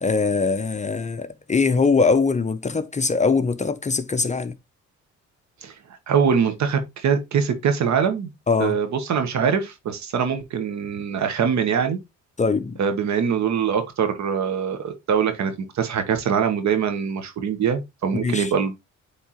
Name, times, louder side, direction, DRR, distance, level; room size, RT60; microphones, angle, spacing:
voice 1, 0.0-4.5 8.5-8.8 12.4-12.8 18.2-18.5, left 4 dB, 25° left, 0.6 m, -22 dB
voice 2, 6.1-8.3 8.6-12.0 12.8-18.8, right 7 dB, 65° right, 1.3 m, -23 dB
8.4 x 3.7 x 3.0 m
cardioid pair, 90°, 30 cm